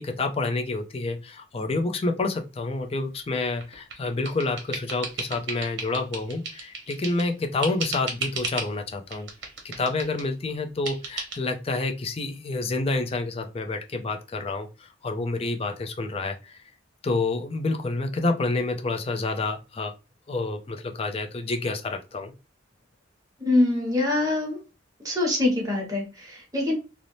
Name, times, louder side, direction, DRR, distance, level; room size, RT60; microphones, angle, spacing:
voice 1, 0.0-9.3 9.6-16.6 17.0-19.9 20.3-22.3, left 3 dB, 30° left, 5 dB, 0.4 m, -28 dB
sound 1, 3.6-7.3 7.6-8.7 9.1-10.3 10.9-11.4, right 4 dB, 60° right, 0.8 m, -35 dB
voice 2, 23.4-24.6 25.0-26.7, left 2 dB, 20° right, -2 dB, 1.0 m, -24 dB
2.6 x 2.0 x 3.0 m, 0.29 s
head